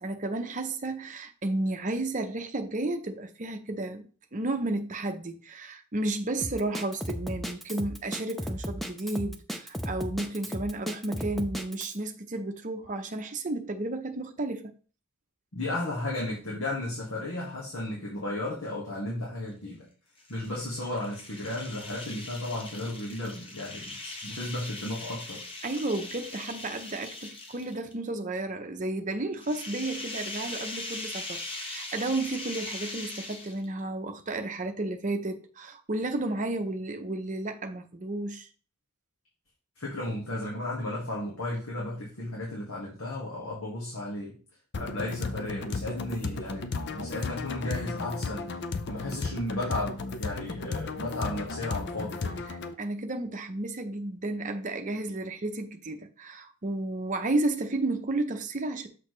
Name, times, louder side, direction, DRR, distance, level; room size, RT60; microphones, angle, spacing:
voice 1, 0.0-14.7 25.6-38.5 52.5-58.9, right 2 dB, 35° right, 0.7 m, -32 dB
Drum kit, 6.4-12.0, equal, ahead, 0.5 m, -35 dB
voice 2, 15.5-19.9 20.3-25.4 39.8-44.4 44.8-48.5 48.9-52.4, left 1 dB, 70° left, 1.9 m, -34 dB
sound 1, 20.2-27.9 29.3-33.8, left 2 dB, 25° left, 1.1 m, -40 dB
sound 2, 44.7-52.7, left 3 dB, 50° left, 0.6 m, -34 dB
6.3 x 5.9 x 3.2 m
head